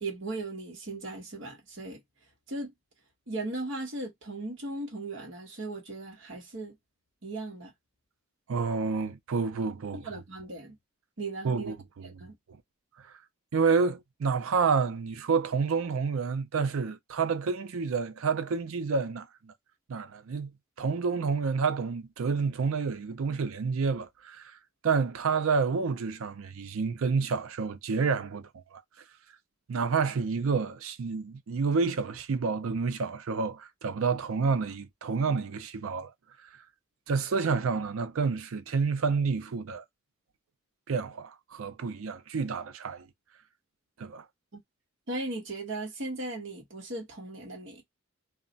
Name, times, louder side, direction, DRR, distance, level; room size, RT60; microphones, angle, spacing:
voice 1, 0.0-2.0 2.5-2.7 3.3-6.7 7.2-7.7 9.9-10.8 11.2-11.8 12.0-12.3 44.5-44.6 45.1-47.8, right 2 dB, 60° right, 1.0 m, -37 dB
voice 2, 8.5-10.1 11.4-12.1 13.5-19.5 19.9-20.5 20.8-24.5 24.8-28.8 29.7-36.1 37.1-39.8 40.9-43.1 44.0-44.2, right 5 dB, 80° right, 0.5 m, -29 dB
2.3 x 2.1 x 3.9 m
head